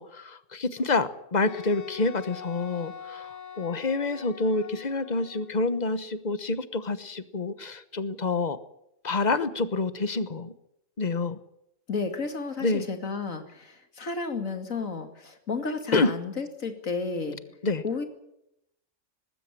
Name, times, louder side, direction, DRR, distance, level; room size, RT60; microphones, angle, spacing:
voice 1, 0.0-3.3 3.6-8.6 9.0-10.5 11.0-11.4 12.6-12.9 15.9-16.1 17.6-17.8, left 3 dB, 35° left, 13 dB, 1.2 m, -27 dB
Wind instrument woodwind instrument, 1.4-5.7, left 7 dB, 65° left, 1.9 m, -43 dB
voice 2, 11.9-17.4 17.8-18.1, left 4 dB, 85° left, 7 dB, 2.8 m, -32 dB
20.0 x 15.5 x 9.8 m, 0.81 s
omnidirectional pair, 1.3 m